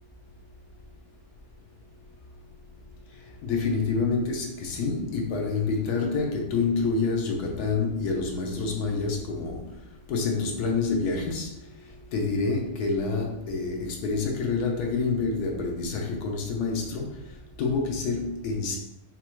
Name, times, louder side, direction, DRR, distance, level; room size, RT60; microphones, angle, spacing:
voice 1, 3.4-9.7 10.1-11.5 12.1-17.1 17.6-18.8, left 4 dB, 85° left, 1 dB, 1.3 m, -27 dB
5.8 x 2.1 x 3.0 m, 0.82 s
omnidirectional pair, 1.6 m